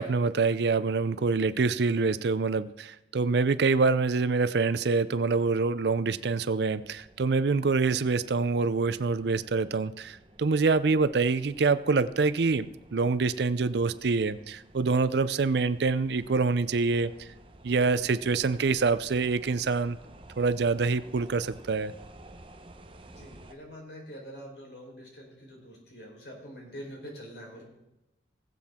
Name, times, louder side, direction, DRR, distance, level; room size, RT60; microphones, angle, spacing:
voice 1, 0.0-17.3 17.6-20.0 20.4-21.9, right 4 dB, 60° right, 15 dB, 0.5 m, -26 dB
sound 1, 6.8-23.5, right 1 dB, 30° right, 0.9 m, -53 dB
voice 2, 23.0-27.7, equal, 65° left, 0 dB, 4.0 m, -45 dB
20.0 x 7.6 x 3.6 m, 0.95 s
head